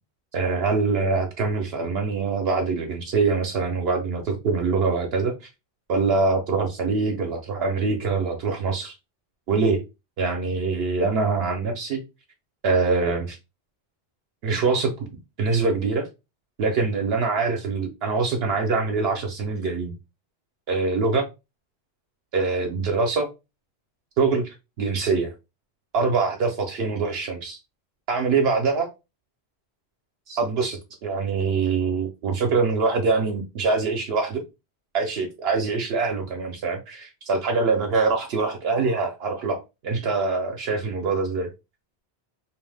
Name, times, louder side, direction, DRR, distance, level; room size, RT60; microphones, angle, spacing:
voice 1, 0.3-5.5 5.9-9.0 9.5-9.8 10.2-12.0 12.6-13.4 14.4-15.1 15.4-16.1 16.6-19.9 20.7-21.2 22.3-23.3 24.2-24.4 24.8-25.3 25.9-27.6 28.1-28.9 30.3-34.4 34.9-41.5, right 4 dB, 70° right, 0.8 m, -24 dB
2.7 x 2.0 x 3.2 m
omnidirectional pair, 1.1 m